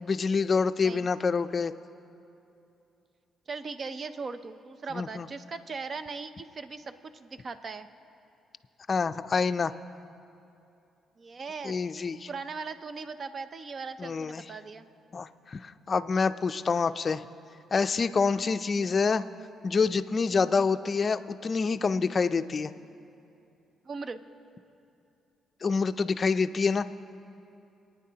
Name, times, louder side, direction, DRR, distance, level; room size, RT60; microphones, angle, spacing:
voice 1, 0.0-1.7 4.9-5.3 8.9-9.7 11.6-12.3 14.0-14.4 15.1-17.2 17.7-19.2 19.6-22.7 25.6-26.9, left 5 dB, 40° left, 11 dB, 0.4 m, -27 dB
voice 2, 3.5-7.9 11.2-11.8 12.3-14.9 18.1-18.3 23.8-24.2, right 4 dB, 45° right, 11 dB, 0.6 m, -39 dB
24.0 x 9.3 x 2.8 m, 2.7 s
cardioid pair, 80°, 0 cm